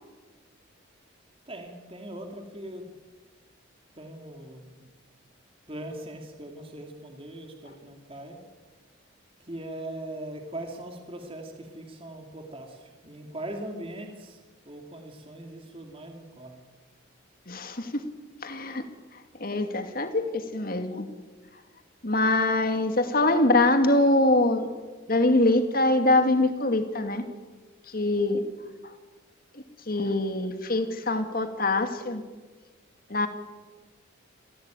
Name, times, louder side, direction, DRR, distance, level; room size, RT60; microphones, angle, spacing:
voice 1, 1.5-2.9 3.9-4.9 5.7-8.4 9.4-14.4 14.7-16.6, right 1 dB, 25° right, 3 dB, 2.6 m, -40 dB
voice 2, 17.5-18.0 18.4-18.9 19.4-21.1 22.0-24.7 25.1-27.2 27.9-28.4 29.9-32.2 33.1-33.3, left 2 dB, 45° left, 8 dB, 2.4 m, -24 dB
27.5 x 16.5 x 9.2 m, 1.3 s
head